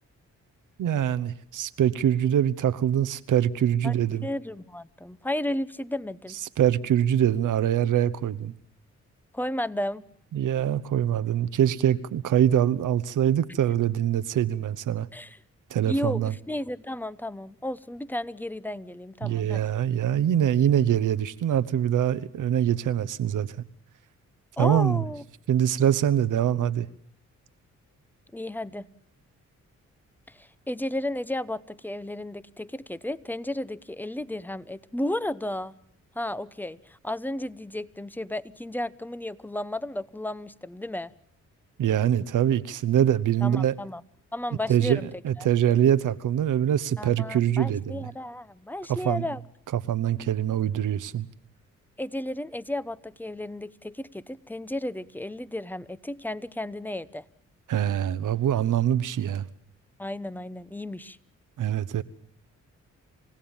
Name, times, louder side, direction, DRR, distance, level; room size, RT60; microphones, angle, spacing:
voice 1, 0.8-4.3 6.6-8.5 10.3-15.1 15.7-16.3 19.2-23.6 24.6-25.0 25.5-26.9 41.8-43.7 44.7-48.1 48.9-49.3 49.7-51.3 57.7-59.5 61.6-62.0, right 10 dB, 75° right, 1.0 m, -24 dB
voice 2, 4.2-6.4 9.3-10.0 15.1-15.4 15.9-19.6 24.6-25.2 28.3-28.9 30.3-35.7 36.1-41.1 43.4-44.0 44.3-45.1 45.4-45.5 47.0-49.4 52.0-57.2 60.0-61.2, left 1 dB, 5° left, 0.9 m, -33 dB
28.0 x 16.5 x 7.2 m
cardioid pair, 60°, 31 cm